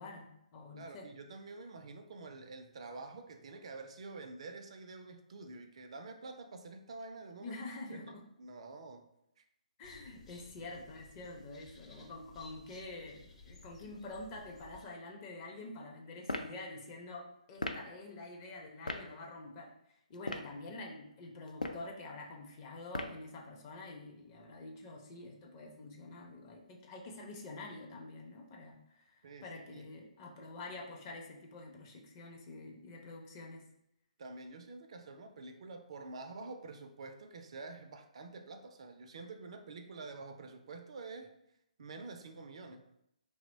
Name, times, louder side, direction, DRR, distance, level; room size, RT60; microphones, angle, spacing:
voice 1, 0.0-1.1 7.4-8.2 9.8-19.7 20.1-33.6, left 2 dB, 30° left, 0 dB, 0.5 m, -47 dB
voice 2, 0.7-7.6 8.4-9.1 9.4-9.5 29.2-29.9 34.2-41.3 41.8-42.8, right 3 dB, 50° right, 6 dB, 0.3 m, -48 dB
sound 1, 9.8-14.8, left 3 dB, 50° left, 0.9 m, -57 dB
sound 2, 16.2-16.5 17.6-17.8 18.9-19.0 20.1-20.5 21.5-21.9 22.9-23.2, left 2 dB, 85° left, 0.3 m, -37 dB
2.9 x 2.0 x 3.8 m, 0.79 s
figure-of-eight pair, 135°, 4 cm